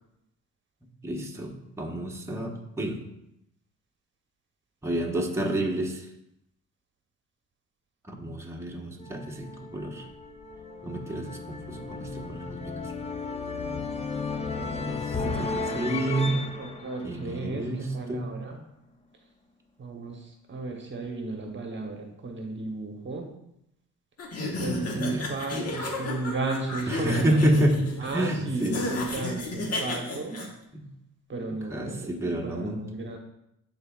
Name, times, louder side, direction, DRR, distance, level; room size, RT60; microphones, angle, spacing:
voice 1, 1.0-3.0 4.8-6.1 8.1-10.0 10.8-12.8 14.8-16.4 17.0-18.3 24.9-25.3 25.6-25.8 26.9-27.8 28.1-28.8 30.7-30.9 31.7-32.8, right 1 dB, 10° right, -1 dB, 1.0 m, -29 dB
sound 1, 9.0-18.0, left 4 dB, 20° left, 0.6 m, -34 dB
voice 2, 15.7-18.6 19.8-23.3 24.6-27.7 28.0-30.5 31.3-33.2, right 3 dB, 40° right, 3 dB, 1.0 m, -34 dB
sound 2, 24.2-30.5, left 2 dB, 55° left, 1.3 m, -33 dB
11.0 x 4.1 x 2.3 m, 0.81 s
cardioid pair, 90°, 30 cm